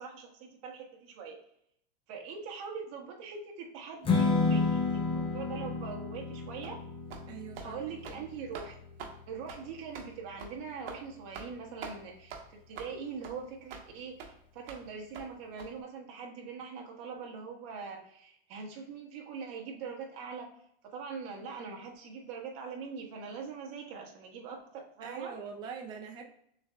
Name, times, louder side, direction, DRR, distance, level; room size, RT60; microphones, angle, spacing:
voice 1, 0.0-1.4 2.1-6.8 7.6-8.8 9.3-20.5 20.8-25.4, right 5 dB, 45° right, 0 dB, 1.2 m, -42 dB
Strum, 4.0-10.3, left 3 dB, 15° left, 0.7 m, -32 dB
sound 1, 6.6-6.8 7.1-7.3 7.5-7.7 8.0-8.2 8.5-8.7 9.0-9.1 9.5-9.6 9.9-10.1 10.4-10.5 10.9-11.0 11.3-11.5 11.8-12.0 12.3-12.4 12.7-12.9 13.2-13.3 13.7-13.8 14.2-14.3 14.7-14.8 15.1-15.3 15.6-15.7, right 5 dB, 65° right, 1.1 m, -43 dB
voice 2, 7.3-8.2 25.0-26.3, right 6 dB, 15° right, 2 dB, 0.4 m, -43 dB
6.3 x 3.5 x 2.2 m, 0.70 s
supercardioid pair, 145°, 31 cm